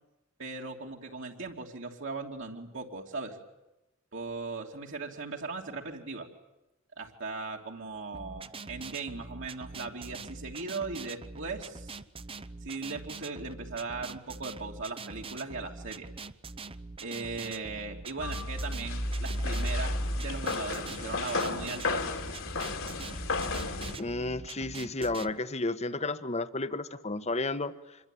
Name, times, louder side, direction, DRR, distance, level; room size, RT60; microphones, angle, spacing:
voice 1, 0.4-3.4 4.1-6.3 7.0-12.0 12.6-16.1 17.0-22.1, right 3 dB, 60° right, 0 dB, 3.0 m, -38 dB
sound 1, 8.1-25.3, right 3 dB, 25° right, 0.9 m, -44 dB
sound 2, 18.2-24.0, left 2 dB, 65° left, 2.8 m, -32 dB
voice 2, 24.0-28.0, left 2 dB, 30° left, 12 dB, 1.3 m, -32 dB
26.5 x 22.5 x 9.3 m, 0.98 s
head